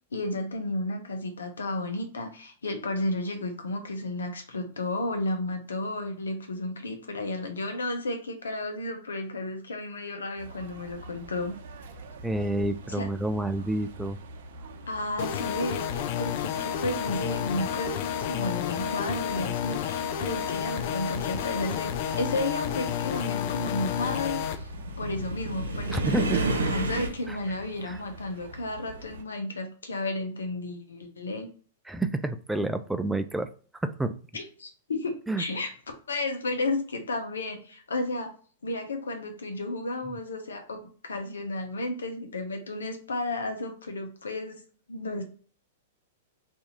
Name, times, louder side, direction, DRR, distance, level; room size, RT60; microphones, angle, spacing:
voice 1, 0.1-11.6 12.9-13.1 14.9-24.7 25.0-31.5 34.3-35.7 36.1-38.3 38.6-44.6 44.9-45.2, left 2 dB, 85° left, 5 dB, 0.8 m, -33 dB
sound 1, 10.4-29.2, right 2 dB, 60° right, 0.7 m, -45 dB
voice 2, 12.2-14.2 25.9-26.5 27.3-27.4 27.9-28.0 31.9-33.5 33.8-34.2 35.3-35.4, right 2 dB, 5° right, 9 dB, 0.3 m, -29 dB
sound 2, 15.2-24.6, left 9 dB, 55° left, 0.5 m, -31 dB
sound 3, 21.1-27.1, right 2 dB, 85° right, 1.0 m, -32 dB
2.8 x 2.7 x 3.7 m, 0.42 s
hypercardioid pair, 115°, 0 cm